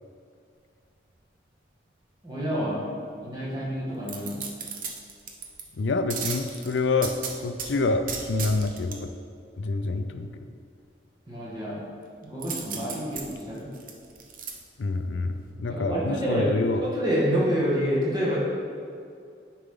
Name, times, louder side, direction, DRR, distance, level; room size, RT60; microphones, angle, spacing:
voice 1, 2.2-2.9 3.2-4.5 11.3-11.8 12.2-13.7 15.7-16.5 16.8-18.5, equal, 25° right, -6 dB, 1.8 m, -27 dB
sound 1, 4.1-5.6 6.1-7.7 8.1-9.0 12.4-14.5 15.0-15.1, right 6 dB, 45° right, 0.8 m, -35 dB
voice 2, 5.8-9.1 9.6-10.4 14.8-16.8, left 3 dB, 85° left, 8 dB, 0.5 m, -27 dB
9.9 x 4.9 x 3.8 m, 2.3 s
head